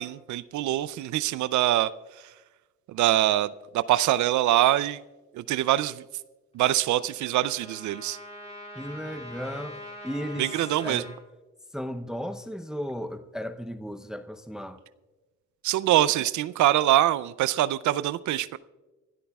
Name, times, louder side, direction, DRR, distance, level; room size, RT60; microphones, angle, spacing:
voice 1, 0.0-2.3 2.9-5.0 5.3-6.0 6.5-8.2 10.4-11.0 15.6-18.6, right 14 dB, 75° right, 16 dB, 0.5 m, -24 dB
Trumpet, 6.7-11.2, left 1 dB, 20° left, 4.3 m, -43 dB
voice 2, 8.7-10.5 10.8-11.1 11.7-14.8, equal, ahead, 7 dB, 0.7 m, -35 dB
26.5 x 13.0 x 2.3 m, 1.2 s
cardioid pair, 90°, 30 cm